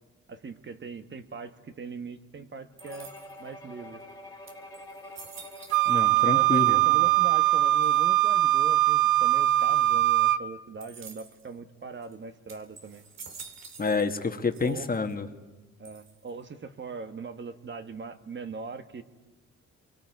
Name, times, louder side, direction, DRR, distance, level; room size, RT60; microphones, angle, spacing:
voice 1, 0.3-3.1 3.4-4.0 6.2-13.0 14.6-14.9 15.8-19.0, right 4 dB, 40° right, 8 dB, 1.5 m, -40 dB
Bowed string instrument, 2.8-8.1, left 1 dB, 10° left, 2.9 m, -47 dB
sound 1, 2.8-3.5 4.1-4.2 4.5-6.2 6.5-7.1 7.8-8.3 10.8-11.5 12.0-12.1 12.5-14.2 14.5-15.1 15.8-16.4, right 5 dB, 60° right, 2.5 m, -48 dB
Wind instrument woodwind instrument, 5.7-10.4, right 15 dB, 85° right, 0.7 m, -22 dB
voice 2, 5.9-6.8 13.8-15.3, left 4 dB, 30° left, 6 dB, 1.6 m, -28 dB
29.0 x 23.5 x 4.8 m, 1.1 s
cardioid pair, 90°, 30 cm